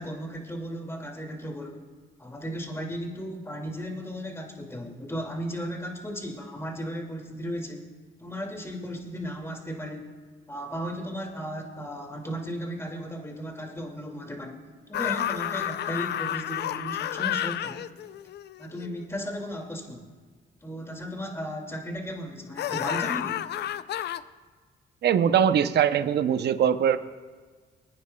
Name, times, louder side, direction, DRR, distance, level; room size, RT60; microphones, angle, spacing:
voice 1, 0.0-1.8 2.2-7.9 8.2-10.1 10.5-14.6 14.9-17.8 18.6-20.1 20.6-23.4, equal, 15° left, 1 dB, 2.2 m, -35 dB
sound 1, 14.9-19.3 22.6-24.2, left 11 dB, 60° left, 0.4 m, -31 dB
voice 2, 25.0-27.0, right 8 dB, 60° right, 11 dB, 0.6 m, -22 dB
25.5 x 9.6 x 2.3 m, 1.5 s
cardioid pair, 90°, 20 cm